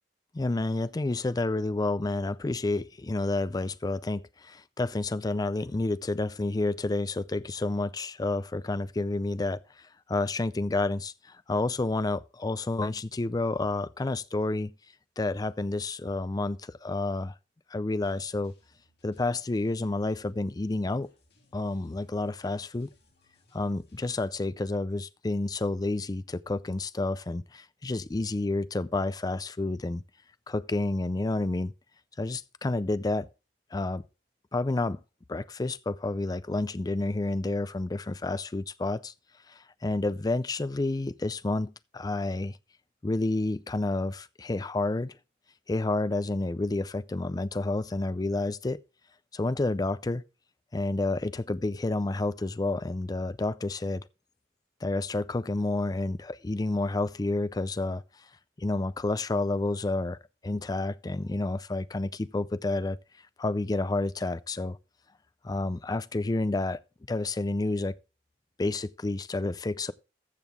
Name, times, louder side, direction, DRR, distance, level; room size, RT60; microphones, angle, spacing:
voice 1, 0.3-9.6 10.1-14.7 15.2-17.3 17.7-18.5 19.0-21.1 21.5-22.9 23.5-30.0 30.5-31.7 32.2-33.3 33.7-34.0 34.5-35.0 35.3-39.1 39.5-42.6 43.0-45.2 45.7-48.8 49.3-50.2 50.7-54.0 54.8-58.0 58.6-60.2 60.4-63.0 63.4-64.8 65.4-66.8 67.1-68.0 68.6-69.9, left 2 dB, 20° left, 0.4 m, -30 dB
sound 1, 18.0-24.4, left 2 dB, 65° left, 3.3 m, -66 dB
14.0 x 6.1 x 3.5 m
head